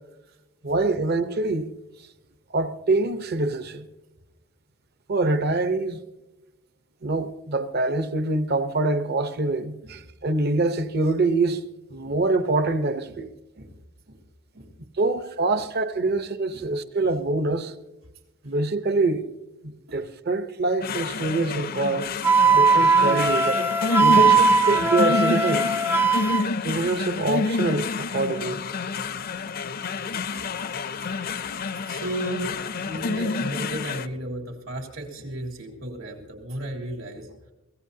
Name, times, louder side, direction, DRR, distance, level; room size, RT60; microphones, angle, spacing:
voice 1, 0.6-1.7 2.5-3.9 5.1-6.0 7.0-11.6 11.9-13.3 15.0-17.7 18.4-19.3 19.6-22.1 22.5-23.7 24.0-24.3 24.7-25.8 26.6-28.6 31.2-31.4, right 2 dB, 50° right, 0.9 m, -25 dB
sound 1, 20.8-34.1, left 4 dB, 45° left, 0.5 m, -29 dB
Wind instrument woodwind instrument, 22.2-26.4, right 4 dB, 10° right, 0.6 m, -19 dB
voice 2, 24.1-24.8 30.3-30.5 30.9-32.5 32.8-37.4, right 1 dB, 80° right, 3.4 m, -35 dB
23.5 x 17.0 x 2.8 m
head